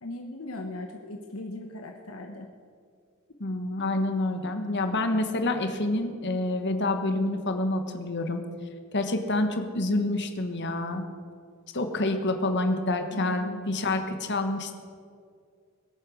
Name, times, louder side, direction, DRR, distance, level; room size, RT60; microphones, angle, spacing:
voice 1, 0.0-2.5 13.1-13.6 13.9-14.3, left 1 dB, 70° left, 3 dB, 1.1 m, -39 dB
voice 2, 3.4-8.4 8.9-11.0 11.7-14.8, left 2 dB, 55° left, 6 dB, 1.4 m, -27 dB
21.0 x 8.8 x 6.4 m, 2.2 s
head